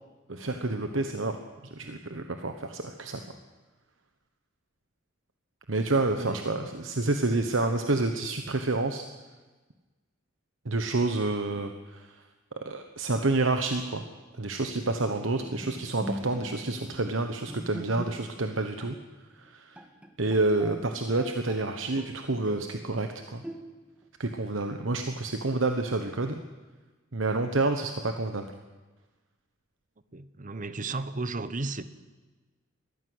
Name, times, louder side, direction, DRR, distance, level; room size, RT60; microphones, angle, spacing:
voice 1, 0.3-1.4 1.6-3.2 5.7-9.0 10.6-12.2 12.6-14.0 14.4-19.0 19.4-19.8 20.2-23.4 24.2-26.4 27.1-28.5, right 2 dB, 70° right, 6 dB, 1.2 m, -28 dB
Bowed string instrument, 15.4-18.5 18.8-19.0 19.4-19.5 19.8-21.7 22.0-22.8 23.4-24.0, equal, 5° right, 1.8 m, -42 dB
voice 2, 30.1-31.8, right 3 dB, 40° right, 13 dB, 1.0 m, -34 dB
22.0 x 14.5 x 8.1 m, 1.3 s
head